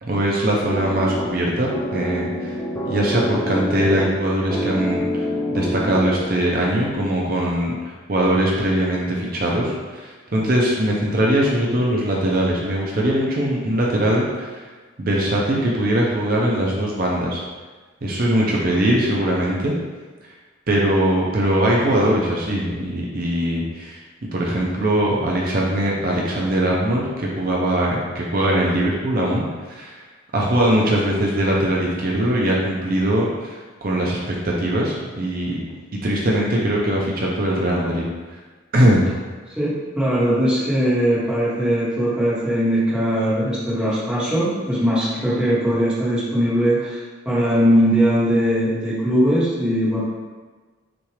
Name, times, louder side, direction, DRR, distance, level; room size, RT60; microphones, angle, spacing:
voice 1, 0.0-2.6 2.8-14.6 15.0-17.4 18.0-19.7 20.7-24.0 24.3-29.9 30.3-35.6 36.0-38.0 38.3-38.4 38.7-39.1, right 1 dB, 45° right, -3 dB, 0.6 m, -21 dB
sound 1, 0.7-6.6, left 1 dB, 15° left, 0.4 m, -27 dB
voice 2, 39.6-50.0, equal, 5° right, -10 dB, 1.2 m, -20 dB
5.9 x 2.4 x 3.2 m, 1.3 s
head